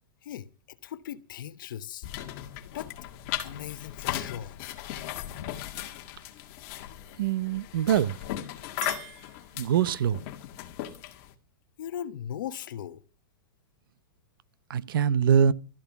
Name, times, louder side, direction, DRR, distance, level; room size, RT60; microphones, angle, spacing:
voice 1, 0.2-2.1 2.6-2.9 3.4-4.6 11.8-13.0, left 10 dB, 65° left, 1.0 m, -38 dB
sound 1, 2.0-11.3, left 13 dB, 40° left, 1.8 m, -37 dB
voice 2, 7.2-8.2 9.6-10.2 14.7-15.5, right 8 dB, 75° right, 0.8 m, -23 dB
Chink clink, 8.7-10.1, right 12 dB, 45° right, 1.0 m, -45 dB
13.5 x 12.0 x 5.8 m
supercardioid pair, 165°, 12 cm